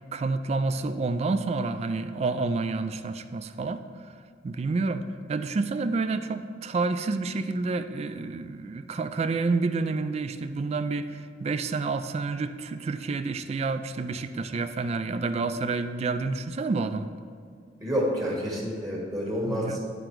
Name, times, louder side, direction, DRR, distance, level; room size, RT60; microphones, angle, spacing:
voice 1, 0.1-3.8 4.4-5.0 5.3-17.1 19.4-19.8, right 3 dB, 35° right, 11 dB, 0.3 m, -29 dB
voice 2, 17.8-19.8, equal, 20° right, -3 dB, 1.4 m, -28 dB
11.0 x 3.8 x 4.6 m, 2.3 s
head